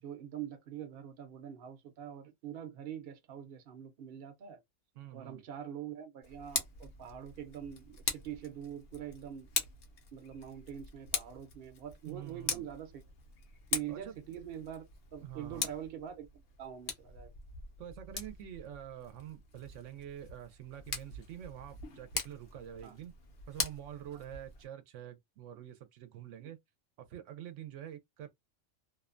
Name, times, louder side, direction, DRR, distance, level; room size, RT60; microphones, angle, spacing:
voice 1, 0.0-4.6 5.1-9.5 10.1-13.0 13.7-14.8 15.1-17.3 22.8-23.0 25.5-25.6 26.4-26.5, right 9 dB, 60° right, 0.8 m, -44 dB
voice 2, 5.0-5.4 12.1-12.6 13.9-14.1 15.2-15.7 17.8-23.1 23.5-26.6 27.0-28.3, right 11 dB, 85° right, 0.9 m, -46 dB
Tick, 6.2-24.7, left 5 dB, 60° left, 0.8 m, -42 dB
2.6 x 2.1 x 2.4 m
omnidirectional pair, 1.2 m